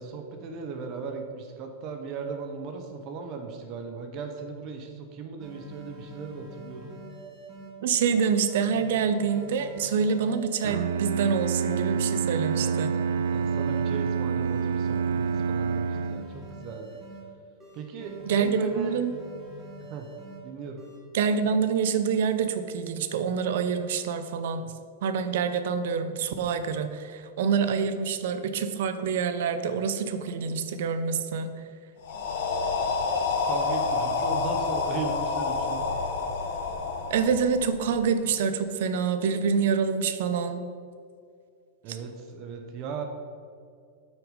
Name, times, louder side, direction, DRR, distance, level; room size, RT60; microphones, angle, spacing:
voice 1, 0.0-6.9 13.3-17.0 17.7-19.0 19.9-20.0 20.4-20.8 32.1-35.8 41.8-43.0, right 5 dB, 30° right, 4 dB, 0.8 m, -37 dB
sound 1, 5.4-7.7 8.1-10.9 11.3-14.0 14.4-17.2 17.6-20.4 20.8-21.5, right 1 dB, 15° right, 2.0 m, -45 dB
voice 2, 7.8-13.0 18.3-19.1 21.1-24.6 25.0-31.5 37.1-40.7, right 6 dB, 60° right, 10 dB, 0.7 m, -26 dB
Bowed string instrument, 10.6-16.5, right 6 dB, 85° right, 0.4 m, -27 dB
sound 2, 32.0-37.9, left 4 dB, 65° left, 1.4 m, -28 dB
8.3 x 6.3 x 5.3 m, 2.3 s
supercardioid pair, 170°, 0 cm